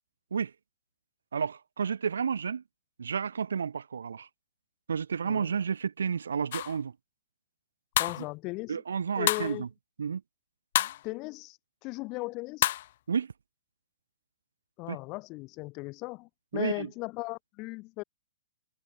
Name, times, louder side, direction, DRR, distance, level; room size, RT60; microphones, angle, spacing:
voice 1, 1.3-2.6 3.0-4.3 4.9-6.9 8.7-9.7 10.0-10.2 13.1-13.3 14.9-15.0 16.5-16.9, right 6 dB, 80° right, 2.2 m, -31 dB
voice 2, 5.2-5.6 8.0-8.8 9.2-9.7 11.0-12.7 14.8-18.0, left 24 dB, 35° left, 4.1 m, -37 dB
sound 1, 6.5-6.8 7.9-8.3 9.3-9.6 10.7-11.0 12.6-12.9, left 13 dB, 55° left, 1.4 m, -28 dB
hypercardioid pair, 125°, 0 cm